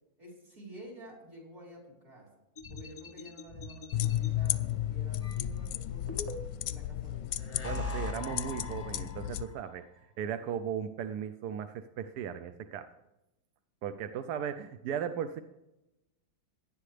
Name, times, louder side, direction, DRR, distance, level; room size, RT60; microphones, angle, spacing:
voice 1, 0.2-2.3 2.7-6.2 6.7-7.3, equal, 50° right, -1 dB, 5.4 m, -50 dB
sound 1, 2.6-4.3 5.2-6.7 7.3-9.5, left 2 dB, 25° left, 0.9 m, -41 dB
sound 2, 3.9-9.4, left 13 dB, 75° left, 1.1 m, -34 dB
voice 2, 7.6-9.9 10.2-12.9 13.8-15.4, right 8 dB, 70° right, 9 dB, 1.1 m, -37 dB
17.5 x 11.5 x 3.3 m, 0.94 s
omnidirectional pair, 2.1 m